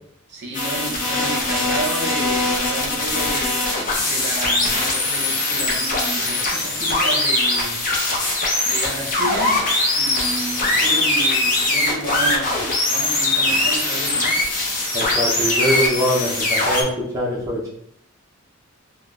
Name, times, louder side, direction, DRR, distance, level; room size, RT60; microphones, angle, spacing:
voice 1, 0.3-3.6 4.0-7.9 8.6-9.7 9.9-14.4, right 2 dB, 55° right, -2 dB, 0.8 m, -31 dB
sound 1, 0.5-16.8, left 2 dB, 40° left, 0.6 m, -21 dB
voice 2, 14.9-17.7, equal, 15° right, -6 dB, 0.5 m, -23 dB
3.6 x 2.1 x 2.3 m, 0.69 s
head